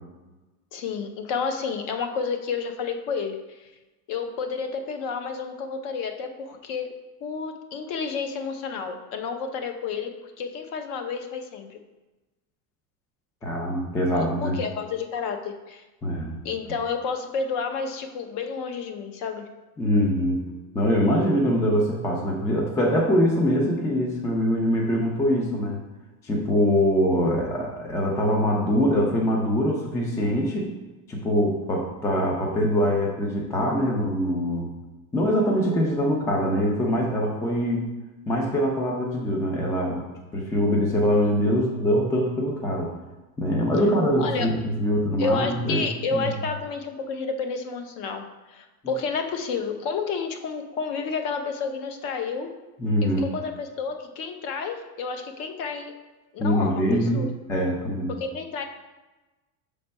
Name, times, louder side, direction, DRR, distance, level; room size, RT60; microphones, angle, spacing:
voice 1, 0.7-3.7 4.1-6.9 7.2-11.8 14.2-15.8 16.4-19.5 44.2-44.5 45.2-52.5 53.0-55.9 56.3-57.3 58.1-58.6, left 5 dB, 45° left, 6 dB, 0.7 m, -30 dB
voice 2, 13.4-14.6 16.0-16.4 19.8-20.4 20.7-25.8 26.2-30.7 31.1-34.7 35.1-37.8 38.3-40.0 40.3-42.9 43.4-46.3 52.8-53.2 56.4-58.1, equal, 10° left, -1 dB, 0.3 m, -23 dB
6.0 x 3.3 x 5.2 m, 1.1 s
cardioid pair, 150°, 44 cm